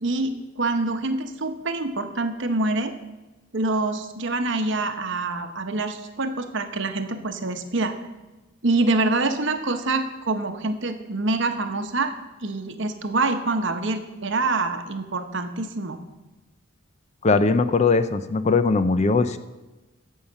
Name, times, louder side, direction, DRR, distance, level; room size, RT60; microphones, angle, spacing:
voice 1, 0.0-2.9 3.5-7.9 8.6-12.1 12.4-16.0, right 2 dB, 60° right, 7 dB, 1.0 m, -25 dB
voice 2, 17.2-19.4, left 4 dB, 30° left, 12 dB, 0.4 m, -20 dB
14.0 x 5.6 x 6.7 m, 1.1 s
head